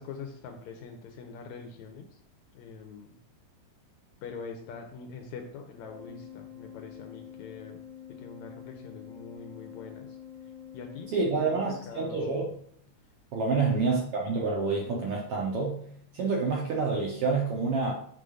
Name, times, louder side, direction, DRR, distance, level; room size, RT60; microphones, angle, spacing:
voice 1, 0.0-2.2 2.5-3.2 4.2-7.8 8.1-11.1 11.4-12.4 13.5-14.1, left 5 dB, 75° left, 4 dB, 1.9 m, -44 dB
Organ, 5.8-12.3, left 9 dB, 85° right, 3.1 m, -47 dB
voice 2, 11.1-12.5 13.3-15.9 16.1-17.9, right 4 dB, 70° right, -1 dB, 1.4 m, -28 dB
6.8 x 3.8 x 4.9 m, 0.64 s
omnidirectional pair, 3.6 m